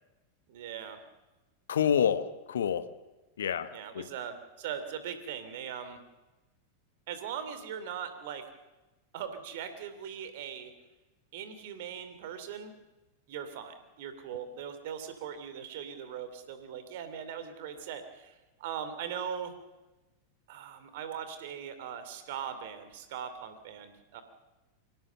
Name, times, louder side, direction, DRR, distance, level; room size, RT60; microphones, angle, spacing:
voice 1, 0.5-1.0 3.7-6.0 7.1-8.5 9.1-10.7 11.3-12.7 13.3-18.3 18.6-19.5 20.5-24.2, right 8 dB, 50° right, 10 dB, 2.7 m, -40 dB
voice 2, 1.7-2.8 3.4-3.7 3.9-4.1, left 8 dB, 65° left, 13 dB, 1.1 m, -27 dB
24.5 x 17.0 x 6.8 m, 1.1 s
figure-of-eight pair, 90°, 0 cm